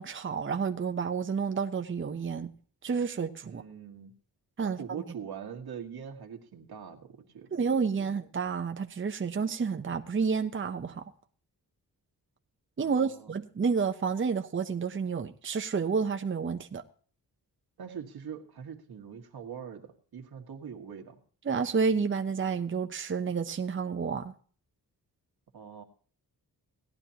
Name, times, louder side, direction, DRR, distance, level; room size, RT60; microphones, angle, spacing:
voice 1, 0.0-2.5 2.8-3.6 4.6-5.0 7.5-11.0 12.8-16.8 21.4-24.3, right 5 dB, 35° right, 0.8 m, -30 dB
voice 2, 3.4-4.1 4.6-7.6 8.0-8.2 12.8-13.3 17.8-21.2 25.5-25.8, right 7 dB, 80° right, 1.9 m, -43 dB
17.5 x 11.0 x 2.9 m
wide cardioid pair, 110°, 38 cm